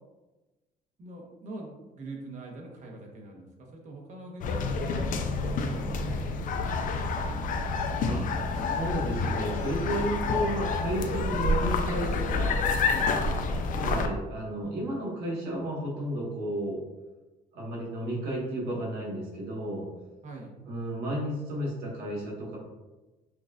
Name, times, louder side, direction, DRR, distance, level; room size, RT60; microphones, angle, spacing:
voice 1, 1.0-7.3 11.0-11.4 13.1-13.5 20.2-20.5, right 2 dB, 45° right, 0 dB, 1.0 m, -44 dB
sound 1, 4.4-14.1, left 3 dB, 50° left, 0.4 m, -28 dB
voice 2, 8.5-12.6 13.7-16.8 17.5-19.9 20.7-22.6, right 1 dB, 80° right, -3 dB, 1.3 m, -32 dB
5.9 x 2.4 x 2.3 m, 1.1 s
cardioid pair, 110°, 17 cm